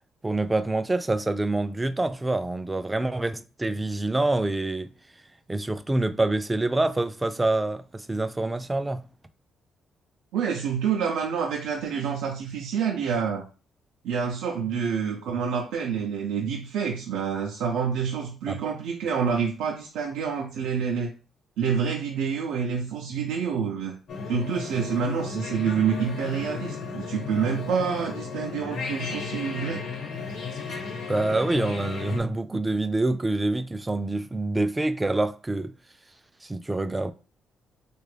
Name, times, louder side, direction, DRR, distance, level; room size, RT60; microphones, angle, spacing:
voice 1, 0.2-4.9 5.5-9.0 18.5-18.6 30.7-30.8 31.1-35.7 36.4-37.1, right 2 dB, 15° right, 0.3 m, -26 dB
voice 2, 10.3-13.4 14.0-21.1 21.6-24.0 24.3-29.8, right 7 dB, 90° right, 0.5 m, -27 dB
sound 1, 24.1-32.2, left 5 dB, 75° left, 0.9 m, -34 dB
3.3 x 2.4 x 3.3 m
cardioid pair, 90°, 0 cm